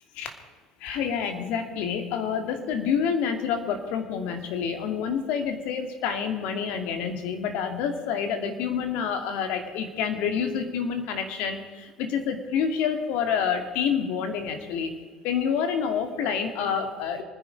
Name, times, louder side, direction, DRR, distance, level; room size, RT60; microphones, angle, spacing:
voice 1, 0.8-14.9 15.2-17.2, left 7 dB, 65° left, 5 dB, 2.6 m, -28 dB
27.0 x 10.5 x 4.8 m, 1.4 s
hypercardioid pair, 75°, 3 cm